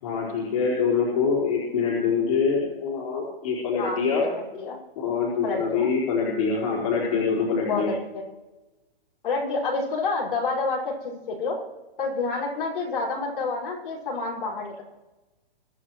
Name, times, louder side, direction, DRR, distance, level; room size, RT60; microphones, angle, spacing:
voice 1, 0.0-4.2 5.0-7.9, left 5 dB, 35° left, -5 dB, 4.4 m, -25 dB
voice 2, 4.3-4.8 5.4-5.9 7.7-8.2 9.2-11.6 12.0-14.8, left 3 dB, 65° left, -4 dB, 5.8 m, -28 dB
24.0 x 13.5 x 3.2 m, 1.1 s
hypercardioid pair, 175°, 29 cm